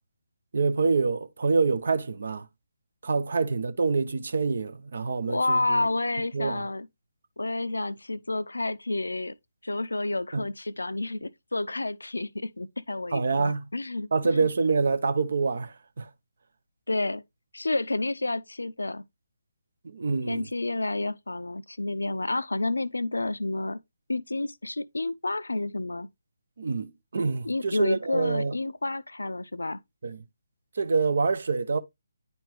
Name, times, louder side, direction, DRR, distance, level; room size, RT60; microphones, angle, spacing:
voice 1, 0.5-2.5 3.0-5.8 6.3-6.6 10.3-10.5 13.1-13.7 14.1-16.1 19.8-20.5 26.6-28.5 30.0-30.2 30.8-31.8, right 4 dB, 55° right, 0.8 m, -26 dB
voice 2, 5.3-6.9 7.4-9.3 9.6-14.5 16.9-17.2 17.5-19.0 20.3-23.8 24.1-26.1 27.4-29.8, left 2 dB, 75° left, 0.5 m, -30 dB
9.7 x 4.4 x 3.2 m
figure-of-eight pair, 145°, 0 cm